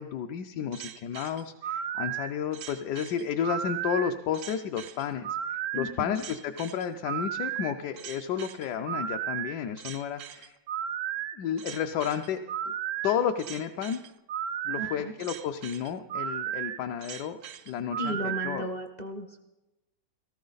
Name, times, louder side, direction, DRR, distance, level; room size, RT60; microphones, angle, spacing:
voice 1, 0.0-10.6 11.3-12.7 13.0-14.0 14.6-17.4 17.7-18.7, left 8 dB, 70° left, 5 dB, 1.1 m, -32 dB
sound 1, 0.7-18.6, right 10 dB, 85° right, 0.7 m, -35 dB
voice 2, 5.7-6.2 14.8-15.1 18.0-19.5, equal, 40° left, 5 dB, 0.6 m, -35 dB
18.0 x 14.0 x 4.0 m, 1.0 s
omnidirectional pair, 2.0 m